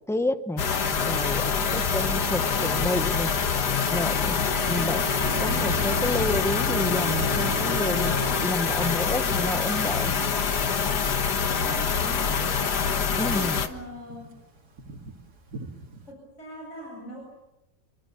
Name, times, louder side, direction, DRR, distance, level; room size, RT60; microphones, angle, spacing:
voice 1, 0.1-0.6 1.0-3.3 3.9-4.4 4.7-5.0 5.4-8.1 8.4-10.1 13.2-13.6, left 1 dB, ahead, 10 dB, 0.8 m, -30 dB
sound 1, 0.6-13.7, left 6 dB, 75° left, 2.1 m, -25 dB
Car passing by, 0.8-13.3 13.6-16.1, right 2 dB, 75° right, 3.2 m, -38 dB
voice 2, 11.6-12.3 13.3-14.3 16.1-17.2, equal, 45° left, -2 dB, 8.3 m, -42 dB
28.5 x 25.0 x 7.1 m, 0.91 s
omnidirectional pair, 1.8 m